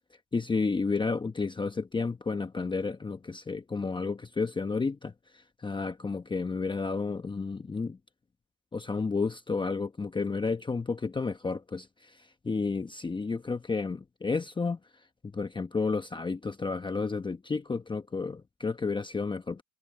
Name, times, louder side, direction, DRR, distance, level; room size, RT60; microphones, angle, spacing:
voice 1, 0.3-8.0 8.7-14.8 15.3-19.6, left 4 dB, 10° left, 1.0 m, -31 dB
supercardioid pair, 115°, 42 cm